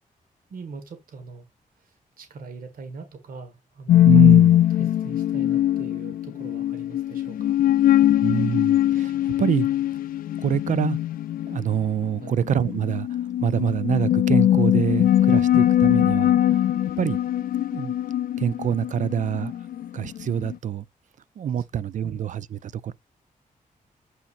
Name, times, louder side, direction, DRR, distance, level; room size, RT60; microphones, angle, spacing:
voice 1, 0.5-1.5 1.8-4.2 4.7-7.6 12.2-12.4 15.5-15.6 21.7-22.2, right 4 dB, 75° right, 1.6 m, -42 dB
sound 1, 3.9-20.5, left 12 dB, 80° left, 0.4 m, -21 dB
voice 2, 4.0-4.6 8.2-9.7 10.4-11.0 11.5-13.1 13.4-16.7 17.0-17.2 17.7-18.1 18.4-19.5 19.9-20.8 21.4-22.9, right 9 dB, 60° right, 0.4 m, -26 dB
7.6 x 5.7 x 2.6 m
wide cardioid pair, 130°, 15 cm